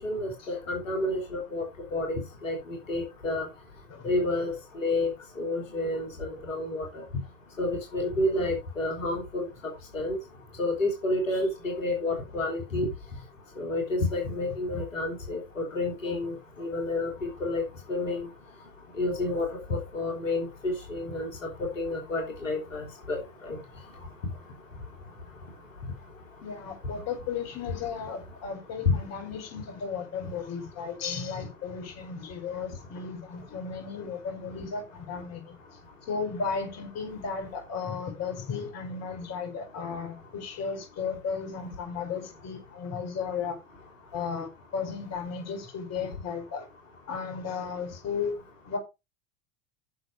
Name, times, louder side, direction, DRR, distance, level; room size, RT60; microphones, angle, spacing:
voice 1, 0.0-1.6 1.9-2.6 2.9-3.5 4.0-5.1 5.4-7.0 7.6-9.5 9.9-10.2 10.6-12.9 13.6-17.6 17.9-18.3 19.0-21.3 21.6-23.2 23.4-23.6 28.8-29.0, left 2 dB, 80° left, 3.3 m, -29 dB
voice 2, 26.4-35.6 36.1-43.6 44.1-46.7 47.1-48.3 48.7-48.8, left 5 dB, 40° left, 5.2 m, -35 dB
10.5 x 6.9 x 4.7 m
hypercardioid pair, 85°, 38 cm